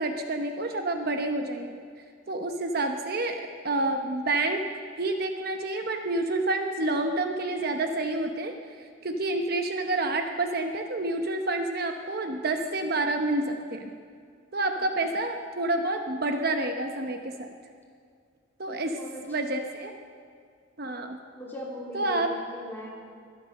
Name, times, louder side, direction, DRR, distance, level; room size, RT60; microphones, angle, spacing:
voice 1, 0.0-1.8 2.3-4.7 5.0-8.5 9.0-13.9 14.5-17.5 18.6-19.0 19.3-19.9 20.8-21.2 21.9-22.3, right 2 dB, 50° right, 5 dB, 0.9 m, -28 dB
voice 2, 18.7-19.2 19.5-19.6 21.3-22.9, left 1 dB, 10° left, -4 dB, 3.1 m, -40 dB
22.0 x 9.4 x 6.6 m, 2.1 s
head